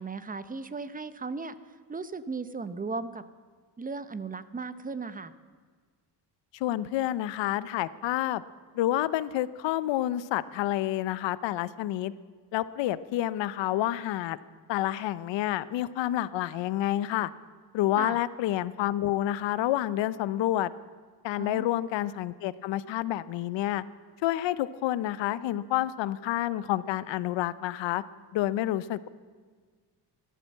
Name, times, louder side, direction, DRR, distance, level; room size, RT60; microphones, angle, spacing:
voice 1, 0.0-1.5 1.9-3.2 3.8-5.3 18.0-18.2 21.4-21.7, right 4 dB, 20° right, 13 dB, 0.7 m, -36 dB
voice 2, 6.5-8.4 8.7-12.1 12.5-14.4 14.7-17.3 17.7-20.7 21.2-23.8 24.2-28.0 28.3-29.1, left 13 dB, 90° left, 17 dB, 0.7 m, -29 dB
15.0 x 12.0 x 7.5 m, 1.6 s
cardioid pair, 110°, 43 cm